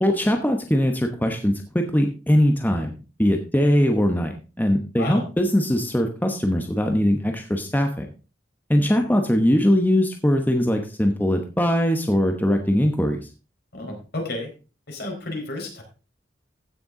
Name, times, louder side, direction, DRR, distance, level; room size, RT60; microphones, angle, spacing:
voice 1, 0.0-2.9 3.2-8.0 8.7-13.3, equal, 10° left, 4 dB, 1.0 m, -21 dB
voice 2, 13.7-14.5 14.9-15.8, left 2 dB, 60° left, 1 dB, 4.5 m, -31 dB
15.5 x 6.9 x 3.8 m, 0.33 s
head